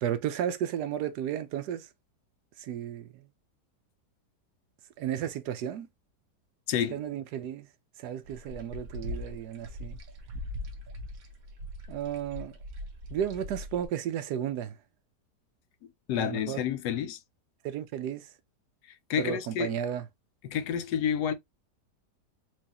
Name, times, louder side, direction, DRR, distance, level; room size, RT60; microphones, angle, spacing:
voice 1, 0.0-1.9 2.6-3.2 5.0-5.9 6.9-7.7 8.0-10.0 11.9-12.5 13.1-14.8 16.2-16.6 17.6-18.3 19.2-20.0, right 10 dB, 75° right, 1.1 m, -33 dB
voice 2, 6.7-7.0 16.1-17.2 19.1-19.8 20.4-21.3, left 8 dB, 75° left, 1.1 m, -29 dB
Water Dripping, 8.2-13.9, left 1 dB, 60° right, 1.3 m, -41 dB
4.5 x 2.7 x 2.8 m
omnidirectional pair, 1.8 m